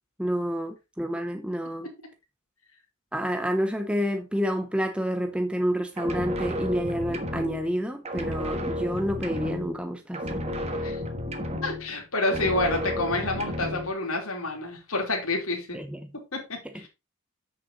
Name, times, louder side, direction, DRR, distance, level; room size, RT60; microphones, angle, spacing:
voice 1, 0.2-1.9 3.1-10.4 15.7-16.0, equal, 5° right, 0.8 m, -29 dB
sound 1, 6.0-7.8 8.0-9.9 10.1-12.0 12.2-13.9, left 1 dB, 30° right, 1.4 m, -32 dB
voice 2, 10.7-11.0 11.6-15.8 16.3-16.9, left 2 dB, 70° left, 3.2 m, -29 dB
8.3 x 6.8 x 4.0 m
head